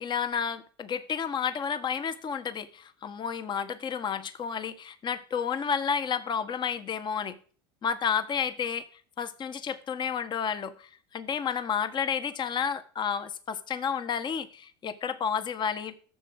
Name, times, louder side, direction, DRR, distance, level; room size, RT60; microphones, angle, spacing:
voice 1, 0.0-7.4 7.8-8.8 9.2-15.9, left 7 dB, 35° left, 11 dB, 1.3 m, -31 dB
14.0 x 7.0 x 6.4 m, 0.43 s
supercardioid pair, 100°, 13 cm